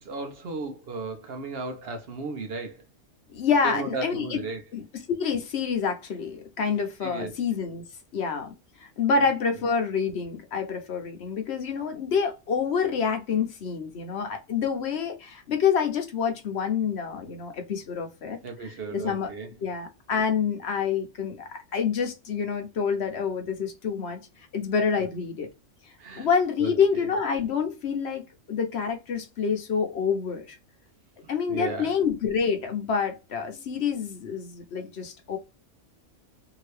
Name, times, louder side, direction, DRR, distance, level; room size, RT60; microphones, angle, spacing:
voice 1, 0.0-2.8 3.6-4.6 7.0-7.4 9.1-9.3 18.4-19.5 24.9-25.0 26.0-26.3 26.6-27.1 31.2-31.9, right 3 dB, 60° right, 0.8 m, -35 dB
voice 2, 3.3-4.4 4.7-7.8 8.1-8.5 8.8-19.3 19.6-24.2 24.5-25.5 26.2-28.2 28.5-30.6 31.3-35.4, left 6 dB, 60° left, 0.9 m, -27 dB
2.8 x 2.7 x 3.1 m
omnidirectional pair, 1.3 m